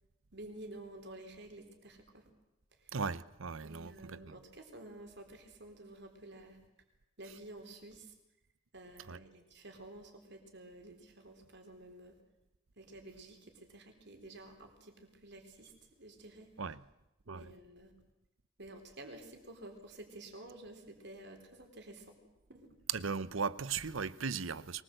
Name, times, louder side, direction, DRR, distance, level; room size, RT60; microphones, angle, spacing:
voice 1, 0.3-2.3 2.8-3.0 3.6-6.6 7.2-8.1 8.7-12.2 12.8-16.6 17.3-17.9 18.6-22.1 22.5-22.7, right 1 dB, 55° right, 4.0 m, -51 dB
voice 2, 2.9-4.3 9.1-9.2 16.6-16.8 17.3-17.5 22.9-24.8, right 5 dB, 75° right, 0.8 m, -37 dB
23.0 x 20.0 x 7.9 m
head